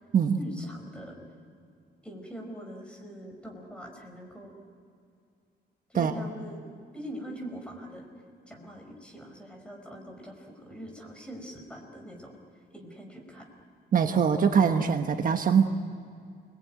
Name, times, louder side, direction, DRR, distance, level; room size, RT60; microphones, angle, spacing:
voice 1, 0.4-1.2 2.0-4.5 5.9-6.7 6.9-8.1 8.5-12.4 12.7-13.5, equal, 5° left, 2 dB, 4.9 m, -43 dB
voice 2, 13.9-15.7, right 7 dB, 50° right, 6 dB, 1.3 m, -23 dB
28.5 x 21.5 x 9.3 m, 2.4 s
wide cardioid pair, 140°, 18 cm